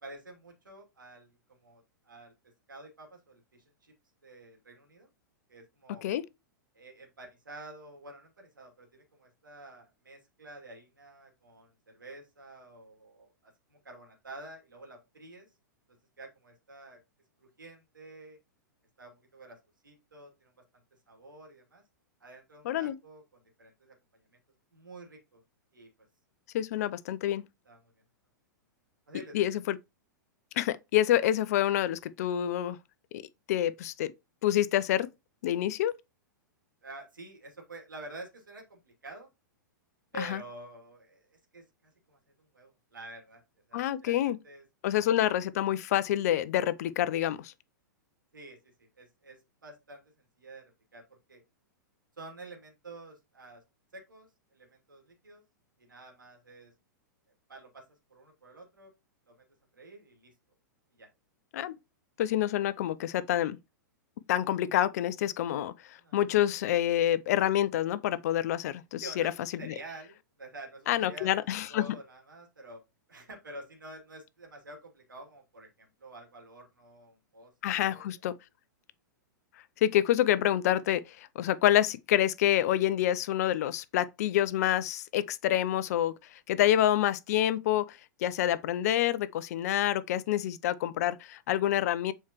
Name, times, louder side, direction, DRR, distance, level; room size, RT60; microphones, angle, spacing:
voice 1, 0.0-2.3 2.7-3.9 4.2-5.1 5.5-6.1 6.7-15.5 16.2-17.0 17.4-18.4 19.0-19.6 19.8-21.8 22.2-23.9 24.7-25.4 25.7-25.9 27.6-27.9 29.1-29.4 36.8-39.3 40.1-43.4 43.7-44.6 45.0-45.1 48.3-50.6 50.9-51.4 52.2-53.6 53.9-55.4 55.8-56.7 57.5-57.8 58.1-58.9 59.3-59.4 59.7-60.3 60.9-61.1 66.0-66.2 69.0-71.3 71.7-72.8 73.1-78.1, right 2 dB, 80° right, 2.7 m, -49 dB
voice 2, 22.6-23.0 26.5-27.4 29.3-29.8 30.6-32.8 33.1-33.2 33.5-34.1 34.4-35.1 35.4-35.9 40.2-40.4 43.7-44.4 44.8-47.5 61.5-61.8 62.2-63.6 64.3-69.2 69.6-69.7 70.9-71.8 77.6-78.3 79.8-86.1 86.5-92.1, left 12 dB, 50° left, 0.5 m, -27 dB
7.3 x 4.4 x 3.0 m
figure-of-eight pair, 105°, 10 cm